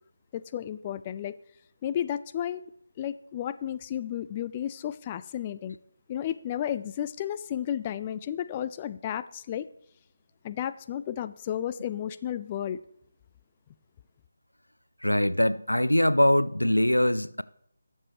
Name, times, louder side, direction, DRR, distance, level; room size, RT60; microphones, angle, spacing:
voice 1, 0.3-1.3 1.8-2.7 3.0-5.8 6.1-9.7 10.4-12.8, left 10 dB, 20° left, 0.3 m, -33 dB
voice 2, 15.0-17.4, left 1 dB, 90° left, 0.4 m, -22 dB
19.5 x 7.2 x 3.1 m
figure-of-eight pair, 155°, 0 cm